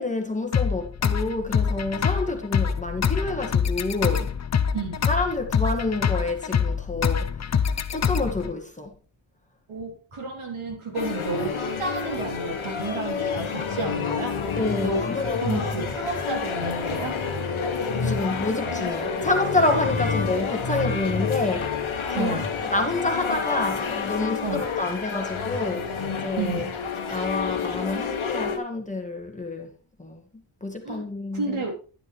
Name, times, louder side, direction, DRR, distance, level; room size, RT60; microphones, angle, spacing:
voice 1, 0.0-4.3 5.1-8.9 14.6-15.7 17.9-21.7 22.1-26.0 26.2-26.6 27.1-29.7 30.0-31.6, left 2 dB, 15° left, 1.8 m, -28 dB
sound 1, 0.5-8.5, left 7 dB, 35° left, 0.5 m, -25 dB
voice 2, 4.7-5.0 9.7-14.4 14.8-17.2 22.1-22.5 24.4-24.7 26.4-26.7 30.8-31.0 31.3-31.7, right 3 dB, 85° right, 3.4 m, -31 dB
sound 2, 10.9-28.6, left 5 dB, 80° left, 1.4 m, -28 dB
10.5 x 9.9 x 3.3 m
wide cardioid pair, 110°, 47 cm